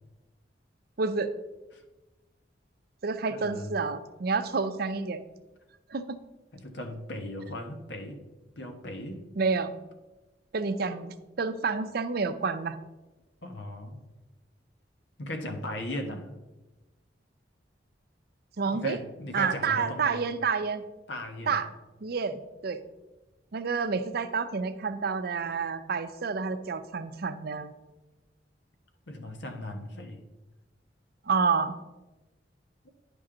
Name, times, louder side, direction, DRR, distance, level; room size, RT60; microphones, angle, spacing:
voice 1, 1.0-1.3 3.0-5.2 5.9-6.2 9.4-9.7 10.5-12.8 18.6-19.0 19.3-20.8 21.5-21.7 22.0-22.8 23.5-27.7 31.3-31.8, right 5 dB, 60° right, 11 dB, 0.5 m, -29 dB
voice 2, 3.3-3.7 6.5-8.2 8.6-9.2 13.4-14.0 15.2-16.3 18.6-20.2 21.1-21.6 29.1-30.2, left 1 dB, 90° left, 5 dB, 1.1 m, -37 dB
10.0 x 5.3 x 3.8 m, 1.1 s
head